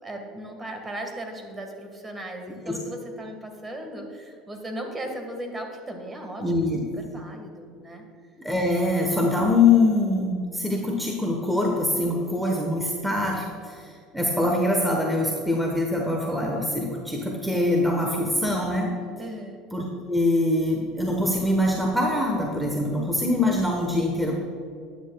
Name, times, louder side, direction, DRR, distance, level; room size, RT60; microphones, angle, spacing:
voice 1, 0.0-6.6 7.0-8.0 19.2-19.6, right 1 dB, 20° right, 4 dB, 1.6 m, -37 dB
voice 2, 6.4-6.8 8.4-13.9 14.1-18.9 19.7-24.4, left 2 dB, ahead, 0 dB, 1.1 m, -23 dB
11.5 x 9.5 x 2.3 m, 2.3 s
supercardioid pair, 100°, 0 cm